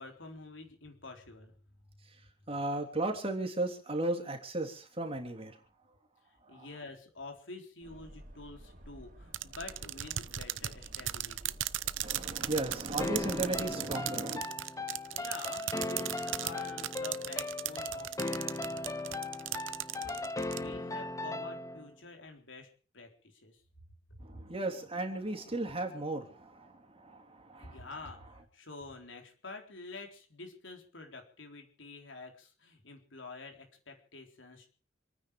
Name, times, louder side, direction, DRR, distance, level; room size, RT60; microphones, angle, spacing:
voice 1, 0.0-1.5 6.5-11.6 15.1-18.8 20.0-23.6 27.6-34.7, left 3 dB, 80° left, 3 dB, 4.1 m, -48 dB
voice 2, 2.5-5.6 6.4-6.7 12.0-14.4 24.2-27.9, right 2 dB, 30° right, 4 dB, 3.3 m, -35 dB
sound 1, 7.8-13.7, right 1 dB, 45° right, 3.4 m, -51 dB
sound 2, 9.3-20.6, right 13 dB, 80° right, 0.7 m, -37 dB
sound 3, 13.0-21.9, left 2 dB, 15° left, 0.8 m, -38 dB
28.0 x 9.6 x 5.1 m, 0.40 s
head